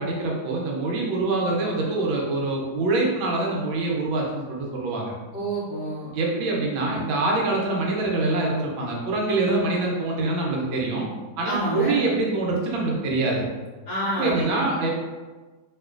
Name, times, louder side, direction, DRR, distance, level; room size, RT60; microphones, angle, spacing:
voice 1, 0.0-5.1 6.1-11.1 11.4-13.5 14.2-14.9, right 2 dB, 80° right, -2 dB, 1.4 m, -25 dB
voice 2, 5.3-6.1 11.4-12.0 13.9-14.7, right 1 dB, 60° left, -9 dB, 0.9 m, -28 dB
3.1 x 2.9 x 2.3 m, 1.3 s
omnidirectional pair, 2.1 m